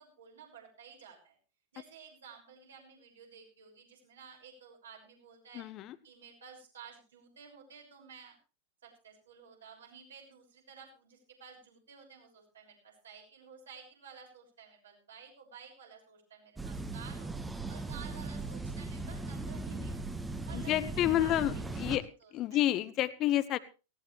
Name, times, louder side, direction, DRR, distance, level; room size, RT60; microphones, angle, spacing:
voice 1, 0.0-1.4 1.7-5.7 6.0-8.4 8.8-17.3 17.7-20.1 20.4-22.6, right 6 dB, 65° right, 1 dB, 6.2 m, -53 dB
voice 2, 5.5-6.0 20.5-22.0 22.3-23.6, left 13 dB, 35° left, 15 dB, 0.9 m, -29 dB
sound 1, 16.6-22.0, right 3 dB, 10° right, 1.5 m, -38 dB
18.5 x 17.0 x 3.3 m, 0.32 s
figure-of-eight pair, 90°, 0 cm